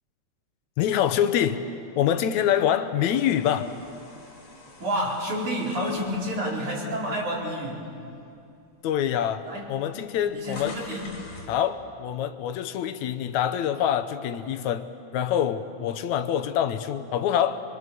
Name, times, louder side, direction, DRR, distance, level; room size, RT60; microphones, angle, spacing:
voice 1, 0.8-1.6 2.0-3.7 8.8-9.4 9.7-10.7 11.5-14.9 15.1-17.6, left 10 dB, 80° left, 10 dB, 2.2 m, -25 dB
sound 1, 3.3-7.6 8.1-8.3 9.2-9.3 9.5-11.6, left 3 dB, 50° left, 3.8 m, -46 dB
voice 2, 4.8-7.9 9.4-9.7 10.3-11.1, equal, 90° right, -4 dB, 5.9 m, -29 dB
25.0 x 23.5 x 6.9 m, 2.6 s
omnidirectional pair, 3.3 m